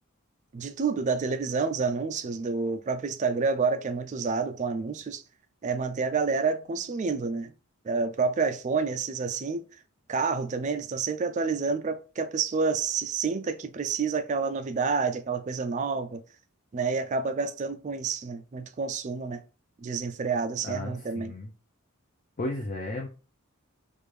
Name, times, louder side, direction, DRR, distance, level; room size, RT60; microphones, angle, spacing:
voice 1, 0.5-5.2 5.6-7.5 7.9-9.6 10.1-16.2 16.7-19.4 19.8-21.3, right 4 dB, 35° right, 0.3 m, -29 dB
voice 2, 20.6-21.5 22.4-23.1, left 2 dB, 40° left, 0.6 m, -34 dB
3.4 x 2.6 x 3.1 m
head